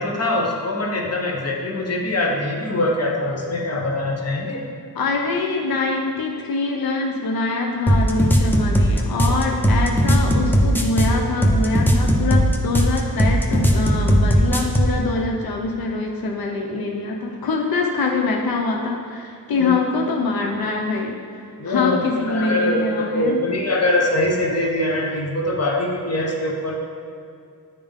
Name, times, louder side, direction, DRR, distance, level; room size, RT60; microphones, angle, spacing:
voice 1, 0.0-4.7 19.6-19.7 21.6-26.8, left 1 dB, 45° left, 0 dB, 0.9 m, -23 dB
voice 2, 5.0-23.4, left 3 dB, 85° left, 1 dB, 0.6 m, -24 dB
sound 1, 7.9-15.0, equal, 5° left, 0.6 m, -17 dB
10.0 x 3.6 x 3.5 m, 2.4 s
wide cardioid pair, 95°, 36 cm